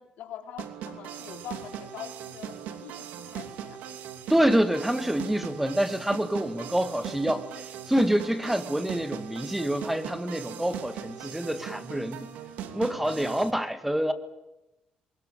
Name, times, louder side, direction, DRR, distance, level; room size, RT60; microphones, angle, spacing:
voice 1, 0.0-3.8 13.2-13.4, left 9 dB, 75° left, 4.0 m, -44 dB
sound 1, 0.6-13.5, right 9 dB, 85° right, 2.8 m, -40 dB
voice 2, 4.3-12.3 12.7-14.1, right 1 dB, 5° right, 1.9 m, -27 dB
23.5 x 21.0 x 9.0 m
cardioid pair, 90°, 3 cm